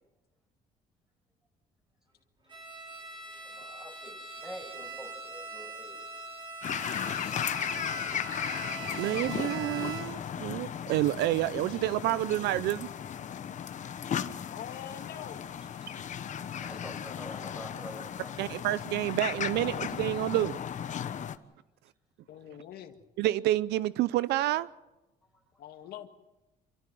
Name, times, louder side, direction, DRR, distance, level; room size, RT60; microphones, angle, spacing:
Bowed string instrument, 2.5-10.3, right 3 dB, 25° right, 5.3 m, -42 dB
voice 1, 3.4-6.1 16.6-18.6 25.3-25.4, equal, 5° right, 5.8 m, -47 dB
sound 1, 6.6-21.4, left 8 dB, 45° left, 1.1 m, -36 dB
voice 2, 9.0-12.9 18.4-20.6 23.2-24.7, right 15 dB, 80° right, 0.6 m, -29 dB
voice 3, 14.5-15.5 22.3-23.0 25.6-26.1, left 10 dB, 70° left, 1.9 m, -44 dB
27.0 x 14.5 x 7.8 m
cardioid pair, 110°, 17 cm